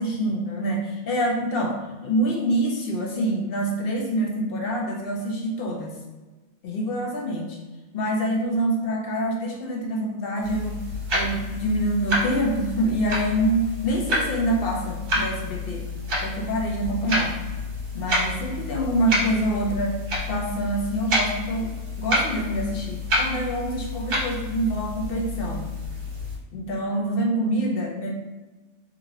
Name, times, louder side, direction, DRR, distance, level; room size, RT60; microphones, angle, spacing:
voice 1, 0.0-6.0 6.6-7.6 7.9-10.8 11.1-15.9 16.2-17.3 17.9-20.0 20.3-25.7 26.5-28.1, right 1 dB, 60° left, -1 dB, 0.7 m, -26 dB
sound 1, 10.4-26.4, left 1 dB, 55° right, 0.9 m, -29 dB
2.9 x 2.7 x 2.6 m, 1.2 s
omnidirectional pair, 1.3 m